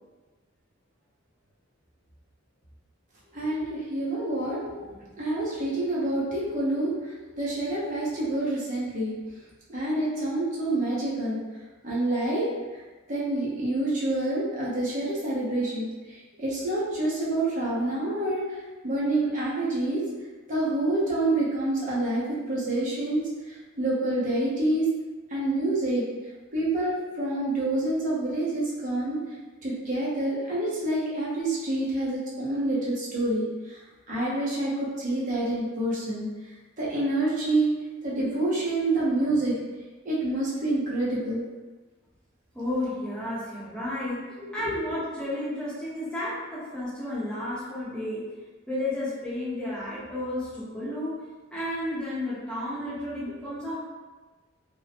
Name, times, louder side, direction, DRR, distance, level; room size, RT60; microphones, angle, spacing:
voice 1, 3.3-9.1 9.7-11.4 11.8-12.5 13.1-18.6 18.8-20.0 20.5-23.2 23.8-24.9 25.3-26.0 26.5-29.2 29.6-33.8 34.1-36.3 36.8-37.7 38.0-39.6 40.0-41.4 44.6-44.7, right 1 dB, 40° right, -7 dB, 0.7 m, -27 dB
voice 2, 42.5-44.2 44.5-48.3 48.7-51.2 51.5-53.8, left 1 dB, 5° left, -10 dB, 0.7 m, -32 dB
3.0 x 2.0 x 2.7 m, 1.2 s
head